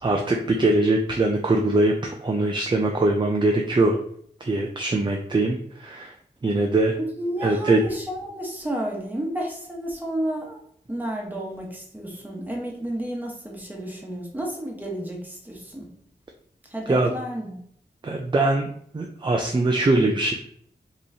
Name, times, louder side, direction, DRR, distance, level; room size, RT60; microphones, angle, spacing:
voice 1, 0.0-4.0 4.4-6.1 6.4-7.0 7.4-7.8 16.9-17.1 18.0-18.7 18.9-20.3, right 2 dB, 25° right, 2 dB, 0.4 m, -22 dB
voice 2, 7.0-10.6 10.9-15.9 16.7-17.6, right 1 dB, 10° right, -1 dB, 1.1 m, -31 dB
5.3 x 3.1 x 2.7 m, 0.64 s
wide cardioid pair, 100°, 17 cm